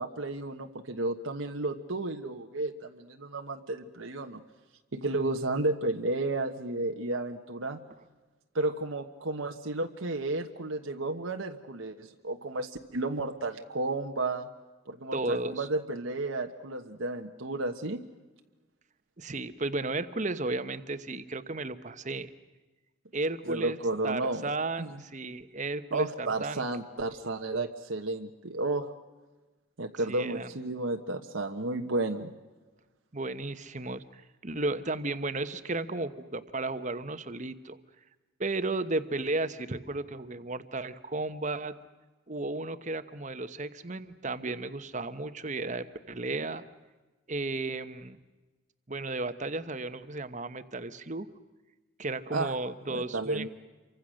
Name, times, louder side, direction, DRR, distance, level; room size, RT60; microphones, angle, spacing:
voice 1, 0.0-4.4 4.9-7.8 8.5-14.5 14.9-18.0 23.5-24.5 24.8-25.0 25.9-28.9 29.8-32.3 52.3-52.5 52.9-53.5, right 2 dB, 75° right, 4 dB, 1.3 m, -32 dB
voice 2, 15.1-15.7 19.2-22.3 23.1-23.8 24.0-26.6 30.1-30.5 33.1-37.8 38.4-41.7 42.3-46.6 47.3-48.2 48.9-51.3 52.0-53.5, right 2 dB, 35° right, 11 dB, 1.1 m, -34 dB
28.5 x 24.5 x 6.5 m, 1.2 s
head